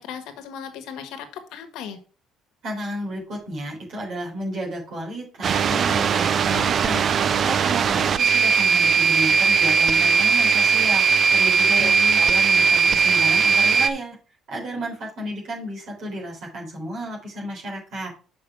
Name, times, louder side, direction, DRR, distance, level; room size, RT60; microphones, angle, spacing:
voice 1, 0.0-2.0 11.8-12.2, left 7 dB, 75° left, 7 dB, 1.4 m, -36 dB
voice 2, 2.6-11.1 11.3-14.2 14.5-18.1, right 1 dB, 55° right, -2 dB, 4.0 m, -32 dB
sound 1, 5.4-13.9, right 5 dB, 35° right, 0.4 m, -19 dB
6.7 x 5.5 x 4.6 m, 0.39 s
cardioid pair, 160°, 0 cm